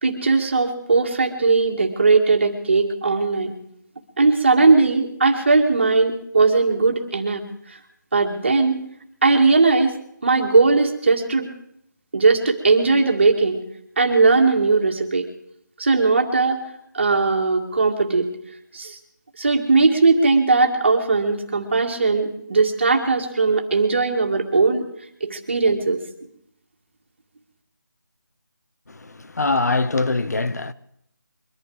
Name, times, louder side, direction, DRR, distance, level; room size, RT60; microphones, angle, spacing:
voice 1, 0.0-3.5 4.2-7.4 7.7-7.8 8.1-8.8 9.2-10.0 10.2-11.5 12.1-13.6 14.0-15.3 15.8-16.6 16.9-18.3 18.7-19.0 19.4-24.8 25.2-26.0, right 4 dB, 35° right, 2.1 m, -18 dB
voice 2, 28.9-30.7, left 3 dB, 55° left, 0.9 m, -23 dB
23.0 x 11.0 x 4.9 m
figure-of-eight pair, 175°, 10 cm